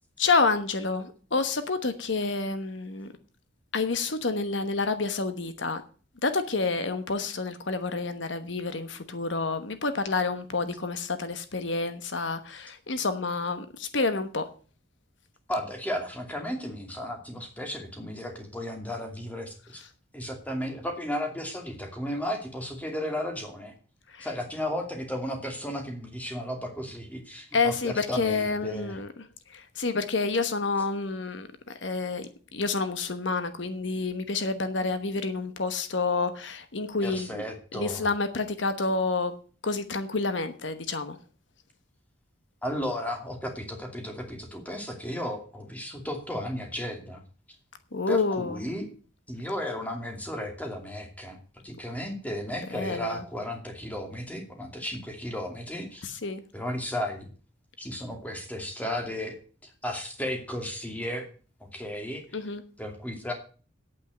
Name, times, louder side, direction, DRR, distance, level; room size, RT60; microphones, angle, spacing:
voice 1, 0.2-3.1 3.7-5.8 6.2-14.5 24.1-24.3 27.5-29.1 29.5-37.4 37.7-39.3 39.6-41.2 47.9-48.6 52.7-53.2 56.0-56.4 62.3-62.6, left 3 dB, 65° left, 10 dB, 1.1 m, -29 dB
voice 2, 15.5-19.8 20.1-23.7 24.2-29.0 37.0-38.1 42.6-47.2 48.1-48.9 49.3-51.4 51.6-56.0 56.5-57.2 57.8-59.4 59.8-61.3 61.7-62.2 62.8-63.3, equal, 10° left, 3 dB, 2.5 m, -34 dB
8.8 x 8.3 x 9.0 m, 0.40 s
head